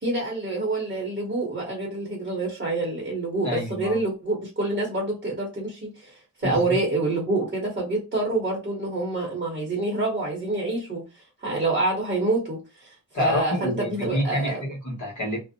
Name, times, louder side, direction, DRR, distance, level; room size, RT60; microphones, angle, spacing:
voice 1, 0.0-14.6, right 2 dB, 30° right, 0.8 m, -27 dB
voice 2, 3.4-4.0 6.4-6.8 13.1-15.4, left 1 dB, 60° left, 1.1 m, -28 dB
2.5 x 2.0 x 2.6 m
wide cardioid pair, 150°, 34 cm